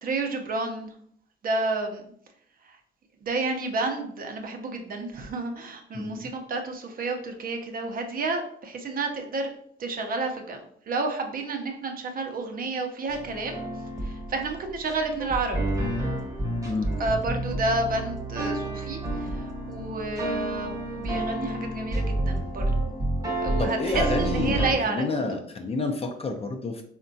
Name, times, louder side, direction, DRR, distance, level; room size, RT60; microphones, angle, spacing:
voice 1, 0.0-0.9 1.4-2.0 2.6-2.8 3.2-9.5 9.8-13.6 14.0-15.7 17.0-22.8 23.4-25.0, right 3 dB, 45° right, 4 dB, 0.6 m, -30 dB
voice 2, 5.9-6.3 16.6-16.9 23.6-26.8, left 3 dB, 30° left, 4 dB, 0.5 m, -29 dB
sound 1, 13.1-24.7, right 1 dB, 15° right, 0.8 m, -29 dB
3.5 x 2.2 x 2.6 m, 0.65 s
cardioid pair, 90°, 20 cm